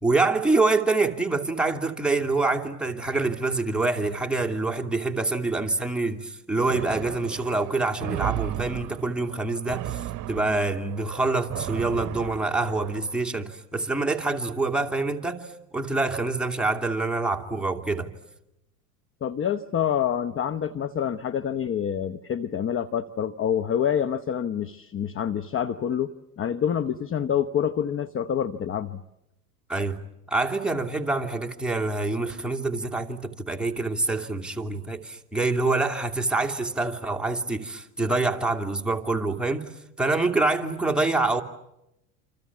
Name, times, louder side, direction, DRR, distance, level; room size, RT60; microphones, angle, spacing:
voice 1, 0.0-18.1 29.7-30.0 30.3-39.7 40.0-41.4, right 3 dB, ahead, 2.8 m, -26 dB
sound 1, 6.7-13.1, right 14 dB, 40° right, 1.3 m, -35 dB
voice 2, 19.2-26.1 26.4-29.0, left 8 dB, 25° left, 1.0 m, -27 dB
28.5 x 27.5 x 7.3 m
hypercardioid pair, 85°, 47 cm